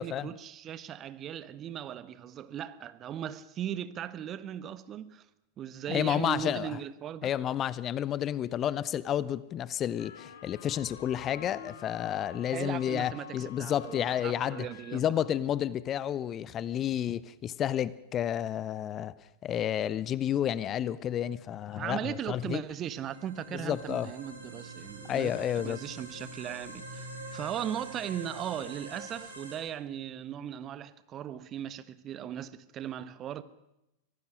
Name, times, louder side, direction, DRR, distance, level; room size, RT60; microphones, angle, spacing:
voice 1, 0.0-5.3 5.6-7.3 12.5-15.1 21.7-33.4, right 10 dB, 30° right, 1.2 m, -38 dB
voice 2, 5.9-6.7 7.2-14.7 14.9-19.1 19.4-22.6 23.5-24.1 25.1-25.8, left 10 dB, 30° left, 0.8 m, -31 dB
sound 1, 10.0-15.1, left 7 dB, 60° left, 2.0 m, -48 dB
sound 2, 22.6-29.6, right 2 dB, 80° right, 7.2 m, -45 dB
24.5 x 18.0 x 6.3 m
figure-of-eight pair, 90°, 0 cm